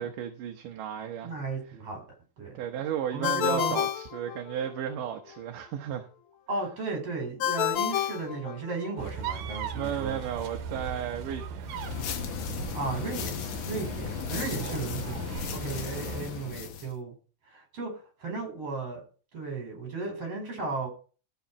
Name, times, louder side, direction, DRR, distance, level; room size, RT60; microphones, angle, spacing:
voice 1, 0.0-1.3 2.5-6.1 9.7-11.7 13.8-14.0, right 9 dB, 70° right, 2.6 m, -34 dB
voice 2, 1.2-2.0 2.4-2.6 3.1-3.8 6.5-10.2 10.7-10.8 12.7-13.3 13.7-17.1 17.5-17.9 18.2-19.0 19.3-20.9, right 3 dB, 45° right, 5.4 m, -35 dB
Ringtone, 3.2-4.9 7.4-9.1, left 11 dB, 90° left, 1.2 m, -30 dB
sound 1, 9.0-16.3, right 6 dB, 90° right, 2.8 m, -38 dB
sound 2, 11.6-16.9, left 9 dB, 65° left, 2.4 m, -36 dB
13.5 x 7.1 x 5.8 m
omnidirectional pair, 4.0 m